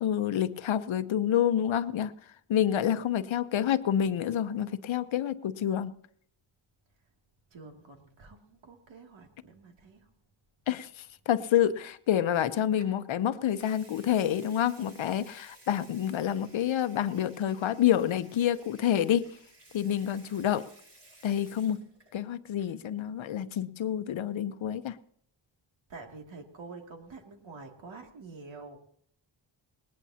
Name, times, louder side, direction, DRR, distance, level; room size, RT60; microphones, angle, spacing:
voice 1, 0.0-2.1 2.5-5.9 10.7-19.3 19.7-20.7 21.2-21.8 22.1-25.0, left 10 dB, 75° left, 12 dB, 0.8 m, -28 dB
voice 2, 7.5-10.1 25.9-28.8, right 3 dB, 70° right, 2 dB, 2.6 m, -47 dB
Water tap faucet / Sink (filling or washing) / Liquid, 12.8-13.0 13.4-22.2 22.5-22.8, right 1 dB, 30° right, 7.7 m, -57 dB
19.5 x 19.5 x 2.9 m, 0.64 s
wide cardioid pair, 110°, 47 cm